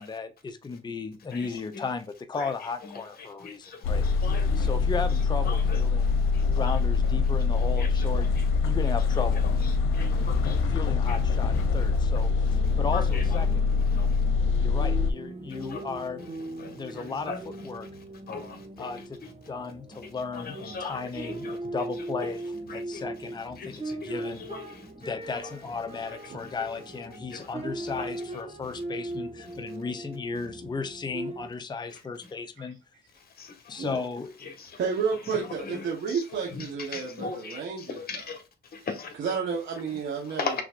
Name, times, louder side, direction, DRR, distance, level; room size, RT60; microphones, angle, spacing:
voice 1, 0.0-4.1 4.6-8.3 8.6-9.4 10.7-13.7 14.6-16.2 16.7-17.9 18.8-24.4 25.0-32.8 33.7-34.3, left 4 dB, 20° left, 0.6 m, -35 dB
voice 2, 3.4-4.5 5.5-6.7 7.5-8.0 9.9-10.6 11.1-11.2 12.9-13.2 13.9-14.1 15.7-15.8 16.6-17.4 18.3-18.6 20.3-21.6 22.7-23.0 23.6-24.9 27.3-27.5 28.0-28.1 33.4-33.8 34.4-34.8 35.3-36.2 36.5-36.6 36.9-38.4 38.7-39.1 40.4-40.6, left 5 dB, 50° left, 1.6 m, -38 dB
sound 1, 3.8-15.1, left 5 dB, 90° left, 0.7 m, -24 dB
sound 2, 12.3-31.5, right 2 dB, 30° right, 1.6 m, -39 dB
voice 3, 34.8-38.4 39.2-40.6, right 6 dB, 65° right, 1.3 m, -31 dB
6.0 x 3.1 x 2.5 m
cardioid pair, 90°, 20 cm